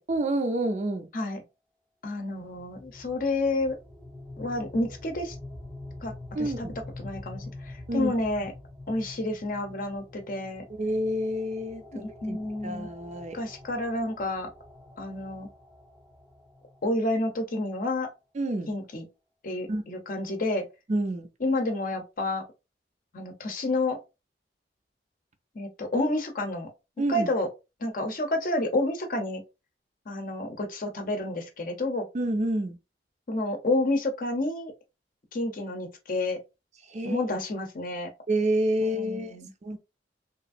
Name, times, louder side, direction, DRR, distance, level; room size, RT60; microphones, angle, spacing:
voice 1, 0.1-1.1 6.3-6.8 7.9-8.1 10.7-12.4 12.6-13.4 18.3-18.7 19.7-19.8 20.9-21.3 27.0-27.3 32.1-32.8 36.9-37.2 38.3-39.4 39.6-39.8, right 1 dB, 40° right, 0.4 m, -28 dB
voice 2, 2.0-3.8 4.4-5.4 6.0-6.7 7.0-8.5 8.9-10.6 11.9-12.9 13.3-14.5 15.0-15.5 16.8-18.1 18.7-19.0 19.4-20.6 21.4-22.4 23.1-24.0 25.5-26.7 27.1-27.5 27.8-29.4 30.1-32.1 33.3-34.7 35.3-36.4 37.0-38.1 39.0-39.5, left 2 dB, 50° left, 0.7 m, -29 dB
sound 1, 2.4-17.3, left 2 dB, 5° right, 0.7 m, -45 dB
2.9 x 2.5 x 2.5 m
head